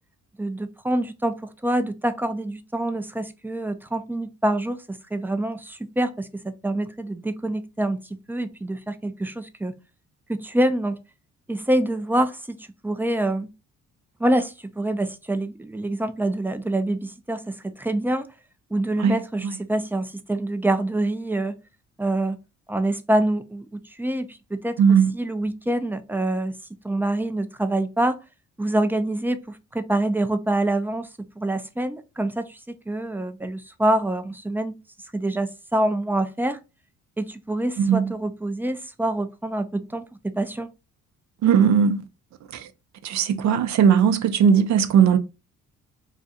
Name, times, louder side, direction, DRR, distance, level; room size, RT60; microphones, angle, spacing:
voice 1, 0.4-8.0 8.3-9.7 10.3-11.0 11.5-12.6 12.8-13.5 14.2-18.3 18.7-21.5 22.0-22.4 22.7-24.8 25.1-26.5 26.8-28.2 28.6-31.1 31.4-34.8 35.1-36.6 37.2-40.7, right 1 dB, 5° right, 0.4 m, -26 dB
voice 2, 24.8-25.1 37.8-38.0 41.4-42.0 42.5-42.6 43.0-45.2, right 7 dB, 65° right, 0.6 m, -18 dB
2.5 x 2.4 x 4.0 m
cardioid pair, 90°, 30 cm